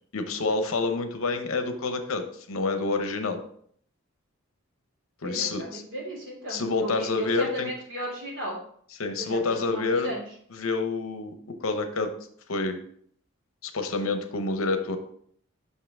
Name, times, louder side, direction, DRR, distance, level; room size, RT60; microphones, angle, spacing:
voice 1, 0.1-3.4 5.2-5.8 6.5-7.7 9.0-10.1 10.5-12.1 12.5-12.8 13.6-15.0, left 3 dB, 75° left, 7 dB, 0.8 m, -28 dB
voice 2, 5.2-8.5 9.2-10.2, right 1 dB, 60° right, -4 dB, 3.0 m, -35 dB
5.7 x 5.5 x 3.5 m, 0.63 s
head